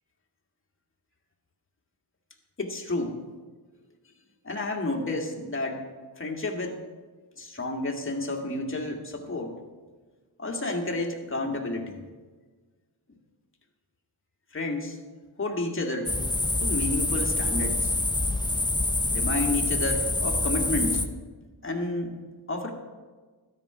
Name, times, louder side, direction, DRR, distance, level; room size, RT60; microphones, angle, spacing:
voice 1, 2.6-3.2 4.4-5.8 6.2-6.8 7.4-9.6 10.4-12.0 14.5-15.0 15.4-16.2 16.6-17.9 19.1-21.0 21.6-22.2 22.5-22.7, left 2 dB, 30° left, 1 dB, 2.0 m, -30 dB
sound 1, 16.1-21.1, left 2 dB, 10° left, 0.7 m, -26 dB
13.0 x 9.8 x 5.0 m, 1.4 s
wide cardioid pair, 85°, 42 cm